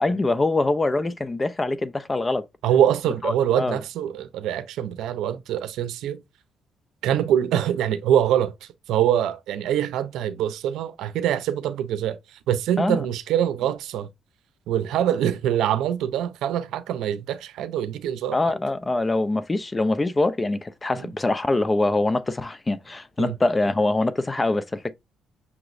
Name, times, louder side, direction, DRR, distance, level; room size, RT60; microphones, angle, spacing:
voice 1, 0.0-2.4 3.2-3.8 12.8-13.0 18.3-24.9, left 2 dB, 20° left, 0.5 m, -24 dB
voice 2, 2.6-6.2 7.0-14.1 14.7-18.4 21.0-21.1 23.2-23.3, right 10 dB, 85° right, 0.5 m, -24 dB
5.9 x 3.0 x 2.6 m
cardioid pair, 90°, 0 cm